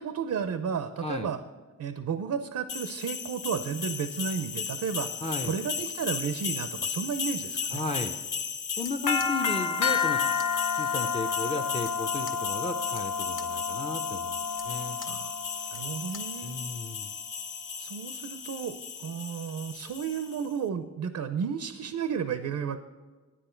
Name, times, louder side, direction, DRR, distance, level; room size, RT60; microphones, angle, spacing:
voice 1, 0.0-1.4 1.8-5.1 5.4-7.8 15.1-15.4 15.7-16.6 17.8-22.8, right 7 dB, 70° right, 11 dB, 0.6 m, -33 dB
sound 1, 2.7-20.4, left 6 dB, 80° left, 0.9 m, -32 dB
voice 2, 5.2-5.5 7.7-8.2 8.8-10.2 10.7-15.0 16.4-17.1, left 2 dB, 20° left, 6 dB, 0.5 m, -35 dB
sound 2, 8.7-16.4, left 4 dB, 40° left, 1.0 m, -49 dB
10.0 x 9.8 x 4.4 m, 1.4 s
wide cardioid pair, 100°, 31 cm